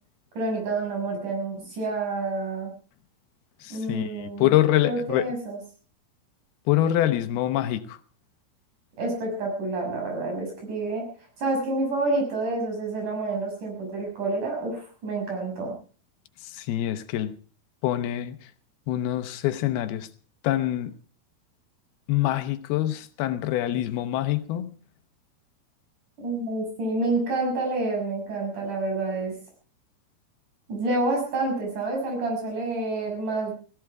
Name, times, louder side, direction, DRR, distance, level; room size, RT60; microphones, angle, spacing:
voice 1, 0.4-2.7 3.7-4.6 4.9-5.6 9.0-11.1 11.4-15.8 26.2-29.3 30.7-33.6, right 2 dB, 55° right, 7.7 m, -28 dB
voice 2, 3.6-5.3 6.7-8.0 16.4-17.3 17.8-18.4 18.9-20.1 20.4-20.9 22.1-24.7, left 13 dB, 85° left, 3.0 m, -25 dB
17.0 x 17.0 x 4.7 m
omnidirectional pair, 4.3 m